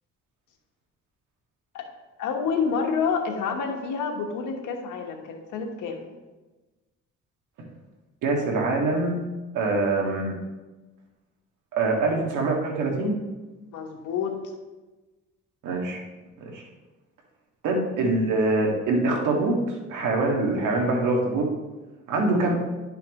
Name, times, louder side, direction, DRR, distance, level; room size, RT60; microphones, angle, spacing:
voice 1, 2.2-6.1 13.7-14.4, left 6 dB, 80° left, 2 dB, 1.3 m, -28 dB
voice 2, 8.2-9.3 9.5-10.3 11.7-13.2 15.6-16.0 16.5-16.6 17.6-21.5 22.1-22.6, right 2 dB, 80° right, 0 dB, 1.7 m, -24 dB
10.5 x 5.7 x 3.0 m, 1.2 s
cardioid pair, 90°, 30 cm